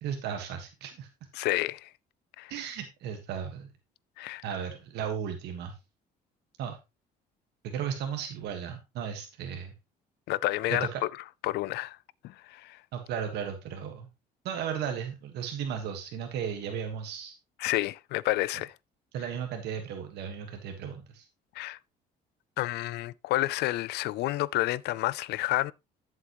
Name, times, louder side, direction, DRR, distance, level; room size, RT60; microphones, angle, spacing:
voice 1, 0.0-1.1 2.5-3.7 4.4-5.7 6.6-6.8 7.6-9.7 10.7-11.0 12.9-14.1 14.4-17.3 19.1-21.2, right 8 dB, 80° right, 1.5 m, -35 dB
voice 2, 1.3-1.9 2.4-2.5 4.2-4.4 10.3-10.9 11.4-12.0 12.2-12.8 17.6-18.7 21.5-21.8 22.6-25.7, left 17 dB, 80° left, 0.5 m, -29 dB
11.0 x 7.4 x 3.0 m
cardioid pair, 110°, 17 cm